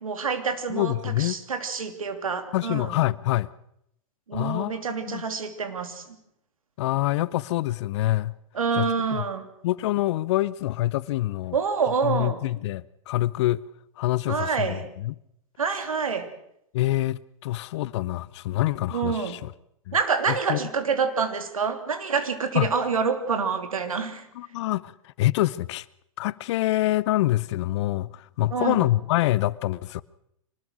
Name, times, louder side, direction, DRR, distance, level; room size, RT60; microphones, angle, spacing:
voice 1, 0.0-3.0 4.3-6.0 8.5-9.5 11.5-12.5 14.3-14.8 15.6-16.3 18.9-19.3 19.9-24.2 28.5-28.9, right 5 dB, 85° right, 2.9 m, -27 dB
voice 2, 0.7-1.4 2.5-3.5 4.3-4.8 5.1-5.2 6.8-8.3 8.7-9.2 9.6-11.6 12.0-13.6 14.0-15.1 16.7-19.5 19.9-20.0 20.5-20.6 22.5-22.7 24.3-24.9 25.2-25.8 26.2-30.0, left 16 dB, 55° left, 0.8 m, -26 dB
24.5 x 19.5 x 6.3 m
hypercardioid pair, 115°, 17 cm